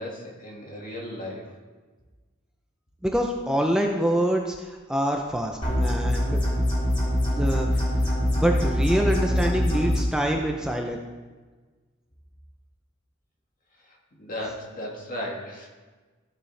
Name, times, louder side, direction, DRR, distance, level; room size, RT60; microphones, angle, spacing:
voice 1, 0.0-1.5 13.9-15.7, left 1 dB, 45° left, -1 dB, 1.9 m, -36 dB
voice 2, 3.0-6.4 7.3-7.9 8.4-11.0, equal, 5° right, 1 dB, 0.5 m, -25 dB
sound 1, 5.6-10.0, equal, 25° left, 3.5 m, -24 dB
14.0 x 7.3 x 3.3 m, 1.3 s
head